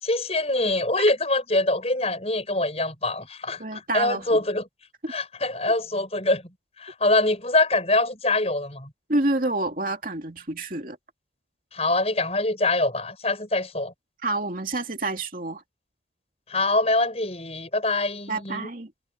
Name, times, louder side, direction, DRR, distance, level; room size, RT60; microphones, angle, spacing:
voice 1, 0.0-4.6 5.1-6.4 6.8-8.9 11.7-13.9 16.5-18.7, left 2 dB, 35° left, 7.8 m, -24 dB
voice 2, 3.6-4.4 5.0-5.1 9.1-11.0 14.2-15.6 18.3-18.9, right 2 dB, 50° right, 2.7 m, -28 dB
head